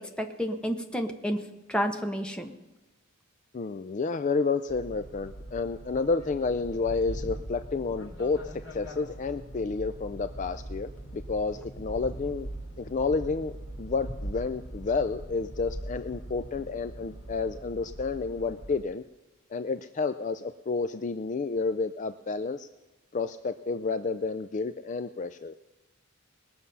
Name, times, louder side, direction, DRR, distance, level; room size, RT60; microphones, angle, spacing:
voice 1, 0.2-1.4 1.7-2.5, equal, 5° left, 4 dB, 1.0 m, -30 dB
voice 2, 3.5-12.5 12.8-13.5 13.8-19.0 19.5-22.7 23.1-25.5, left 4 dB, 35° left, 10 dB, 0.4 m, -30 dB
sound 1, 4.7-18.8, right 1 dB, 70° left, 2.9 m, -41 dB
20.5 x 7.0 x 5.5 m, 1.2 s
head